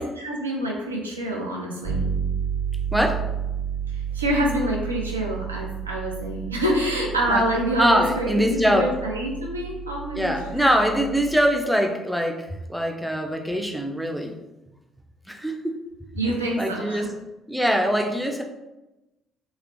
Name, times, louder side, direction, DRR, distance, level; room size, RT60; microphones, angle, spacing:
voice 1, 0.0-2.0 3.9-10.7 16.1-17.1, equal, 85° right, -2 dB, 0.5 m, -27 dB
Bass guitar, 1.8-11.6, right 8 dB, 65° right, 1.0 m, -31 dB
voice 2, 2.9-3.2 7.3-7.5 7.8-8.9 10.1-14.4 15.3-15.8 16.6-17.1 17.5-18.4, equal, ahead, 3 dB, 0.5 m, -23 dB
3.2 x 3.0 x 2.5 m, 1.0 s
figure-of-eight pair, 45°, 0 cm